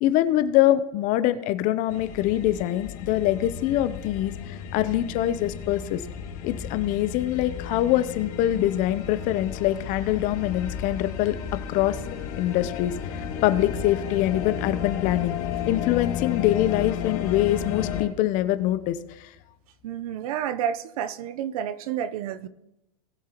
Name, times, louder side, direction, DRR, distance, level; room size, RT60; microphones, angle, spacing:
voice 1, 0.0-6.0 6.4-11.4 11.7-12.0 12.4-15.4 15.7-19.3, left 13 dB, 40° left, 0.7 m, -24 dB
sound 1, 1.9-18.0, left 8 dB, 65° left, 2.1 m, -33 dB
voice 2, 19.8-22.5, right 9 dB, 65° right, 0.8 m, -30 dB
19.0 x 7.5 x 3.0 m
hypercardioid pair, 125°, 20 cm